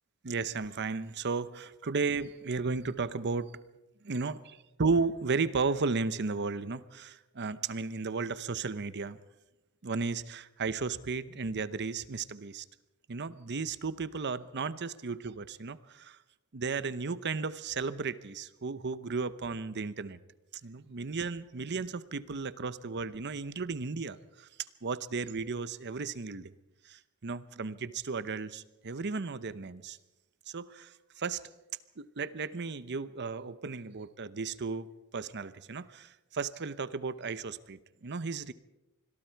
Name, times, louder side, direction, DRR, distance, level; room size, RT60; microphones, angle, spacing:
voice 1, 0.2-3.6 4.0-9.2 9.8-12.6 13.1-16.2 16.5-20.2 20.6-24.5 24.8-26.5 26.8-30.0 30.5-31.4 32.0-34.9 35.1-38.5, right 4 dB, 50° right, 15 dB, 0.8 m, -34 dB
26.0 x 21.5 x 4.6 m, 0.97 s
head